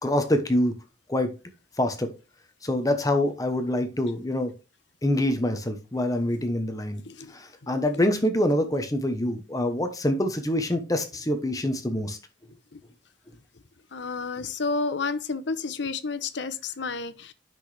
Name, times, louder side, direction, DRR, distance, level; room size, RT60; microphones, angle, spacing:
voice 1, 0.0-0.7 1.1-1.3 1.8-2.1 2.6-4.5 5.0-7.0 7.3-12.2, left 1 dB, 20° left, 1.0 m, -25 dB
voice 2, 13.9-17.3, left 4 dB, 70° left, 0.9 m, -30 dB
9.2 x 6.1 x 3.3 m
head